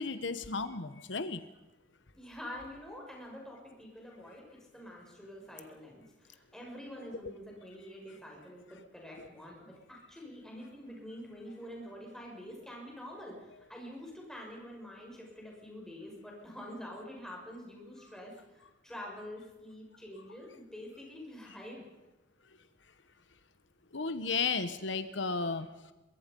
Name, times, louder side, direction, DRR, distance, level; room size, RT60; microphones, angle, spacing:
voice 1, 0.0-1.4 23.9-25.7, left 4 dB, 75° left, 11 dB, 1.1 m, -33 dB
voice 2, 2.2-21.8, equal, 5° left, -2 dB, 6.2 m, -47 dB
23.0 x 23.0 x 5.4 m, 1.0 s
head